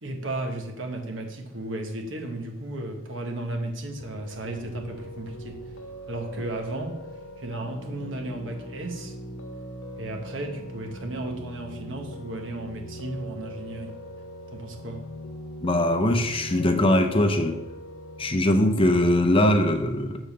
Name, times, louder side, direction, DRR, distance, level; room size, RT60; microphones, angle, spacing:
voice 1, 0.0-5.6 6.1-7.0 7.4-9.2 10.0-14.0 14.5-15.0, right 2 dB, 75° right, 3 dB, 1.3 m, -34 dB
Piano, 4.0-18.3, equal, 85° left, 0.8 m, -41 dB
voice 2, 15.6-17.5 18.2-20.2, left 1 dB, 30° left, 6 dB, 0.7 m, -21 dB
7.1 x 4.0 x 6.6 m, 0.94 s
head